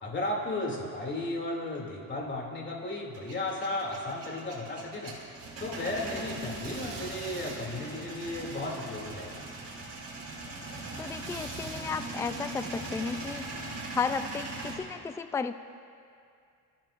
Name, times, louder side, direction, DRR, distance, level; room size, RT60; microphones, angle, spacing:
voice 1, 0.0-5.1 5.6-9.4, left 2 dB, 30° left, -1 dB, 2.7 m, -34 dB
Male speech man speaking / Vehicle / Engine starting, 3.1-14.8, right 2 dB, 40° right, 3.8 m, -40 dB
voice 2, 11.0-13.4 13.9-15.5, left 5 dB, 10° left, 10 dB, 0.3 m, -33 dB
29.0 x 15.0 x 2.6 m, 2.4 s
cardioid pair, 135°, 38 cm